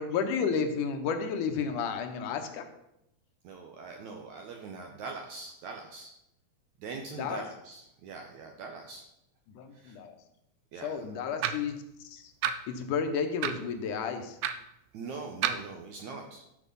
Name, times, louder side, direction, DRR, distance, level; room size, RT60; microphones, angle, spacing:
voice 1, 0.0-2.7 7.1-7.4 9.5-10.2 10.8-12.3 12.7-14.4, left 6 dB, 70° left, 6 dB, 2.3 m, -32 dB
voice 2, 3.4-6.1 6.8-9.0 9.7-10.0 10.7-11.0 14.9-16.4, right 4 dB, 75° right, 2 dB, 1.8 m, -42 dB
sound 1, 11.4-11.7 12.4-12.6 13.4-13.7 14.4-14.6 15.4-15.6, right 9 dB, 90° right, 1.6 m, -29 dB
12.5 x 6.0 x 5.4 m, 0.82 s
omnidirectional pair, 4.2 m